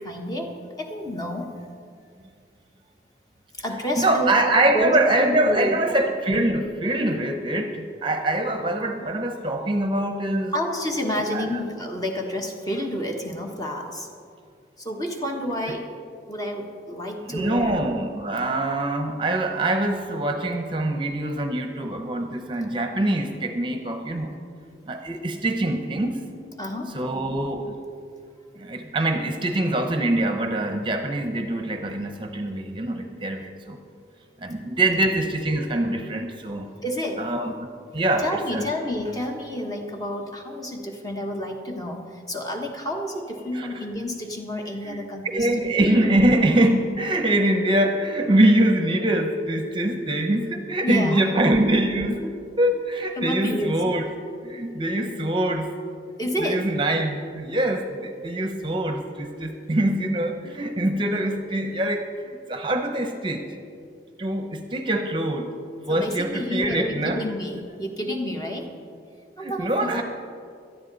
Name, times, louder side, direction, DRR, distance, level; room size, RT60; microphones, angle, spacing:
voice 1, 0.0-1.5 3.5-4.4 4.7-5.8 10.5-14.1 14.8-15.9 16.3-17.8 26.6-27.0 36.8-37.3 38.2-45.5 50.8-51.2 53.2-53.8 56.2-56.7 65.9-68.7 69.4-70.0, equal, 20° left, 2 dB, 1.3 m, -29 dB
voice 2, 4.0-10.5 11.3-11.5 15.7-15.8 17.2-24.4 24.9-26.2 26.9-27.7 28.5-33.8 34.4-36.7 37.2-37.7 37.9-38.7 43.5-43.8 44.8-45.0 45.3-52.3 52.6-54.1 54.4-55.7 56.4-63.5 64.2-65.5 65.9-67.2 69.4-70.0, right 1 dB, 30° right, 5 dB, 0.8 m, -24 dB
17.5 x 13.0 x 4.1 m, 2.3 s
head